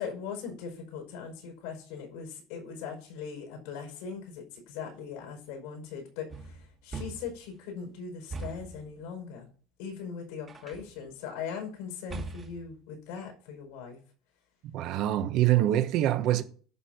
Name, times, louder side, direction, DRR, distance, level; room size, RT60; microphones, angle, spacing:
voice 1, 0.0-9.5 9.8-14.0, left 6 dB, 85° left, 5.5 m, -40 dB
sound 1, 6.3-7.5 8.3-8.8 10.5-11.0 12.1-12.7, right 3 dB, 25° right, 1.6 m, -40 dB
voice 2, 14.7-16.4, right 13 dB, 55° right, 1.1 m, -25 dB
11.0 x 4.3 x 7.7 m
cardioid pair, 145°, 0 cm